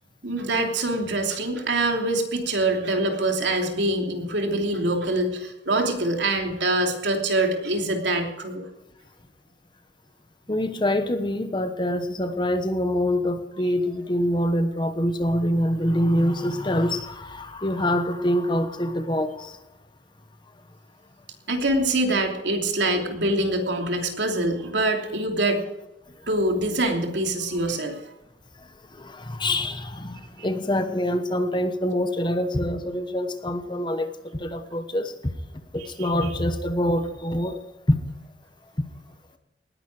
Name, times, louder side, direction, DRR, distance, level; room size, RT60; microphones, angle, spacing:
voice 1, 0.2-8.6 21.5-25.6 26.3-28.0 30.4-30.5 36.0-36.1, right 2 dB, 75° right, 2 dB, 2.9 m, -24 dB
voice 2, 10.5-19.6 28.6-35.1 35.7-37.6 37.9-38.0 38.8-38.9, left 1 dB, 25° left, 9 dB, 1.1 m, -25 dB
19.0 x 10.5 x 4.9 m, 0.98 s
head